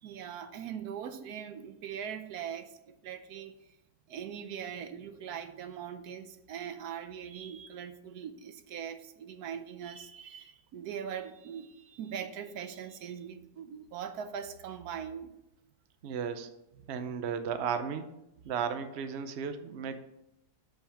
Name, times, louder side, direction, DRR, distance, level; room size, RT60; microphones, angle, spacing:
voice 1, 0.0-3.8 4.1-15.3 16.8-17.1, right 8 dB, 75° right, 9 dB, 1.2 m, -41 dB
voice 2, 16.0-16.5 16.9-18.1 18.4-20.0, right 7 dB, 55° right, 9 dB, 0.8 m, -34 dB
7.1 x 5.8 x 7.0 m, 0.88 s
omnidirectional pair, 1.7 m